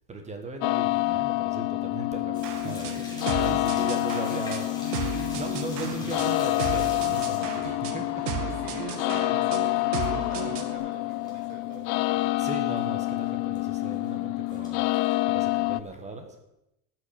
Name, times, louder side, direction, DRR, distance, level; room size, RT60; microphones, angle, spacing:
voice 1, 0.1-5.0 5.3-8.2 12.4-14.8 15.3-16.4, right 3 dB, 15° right, 5 dB, 1.3 m, -38 dB
sound 1, 0.6-15.8, left 19 dB, 45° left, 0.4 m, -28 dB
sound 2, 2.3-10.3 10.6-11.4 11.7-11.8 12.3-12.4 12.5-12.8 13.6-14.1 14.5-15.1, left 2 dB, 10° left, 3.2 m, -46 dB
sound 3, 2.4-10.8, right 7 dB, 90° right, 2.0 m, -35 dB
voice 2, 3.3-3.9 8.4-9.8 10.1-12.3, right 4 dB, 70° right, 3 dB, 4.0 m, -44 dB
13.0 x 6.3 x 8.6 m, 0.87 s
supercardioid pair, 160°, 45 cm